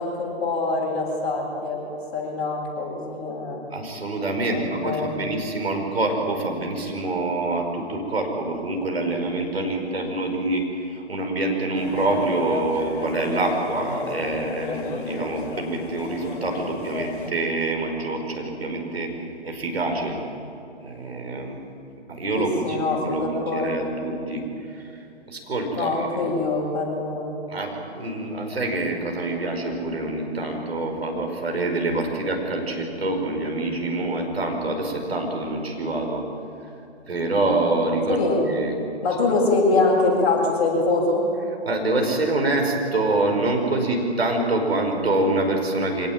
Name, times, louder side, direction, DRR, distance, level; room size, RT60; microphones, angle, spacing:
voice 1, 0.0-1.8 2.1-3.6 4.5-5.3 22.3-23.9 25.7-27.3 38.1-38.5 39.0-41.3, left 3 dB, 35° left, -3 dB, 7.7 m, -24 dB
voice 2, 3.7-20.2 20.8-21.6 22.1-26.3 27.5-36.2 37.1-38.2 38.5-38.7 41.7-46.1, right 2 dB, 65° right, 2 dB, 5.3 m, -26 dB
sound 1, 11.7-17.3, left 4 dB, 50° left, 2.0 m, -34 dB
25.5 x 18.0 x 9.2 m, 2.7 s
figure-of-eight pair, 130°, 33 cm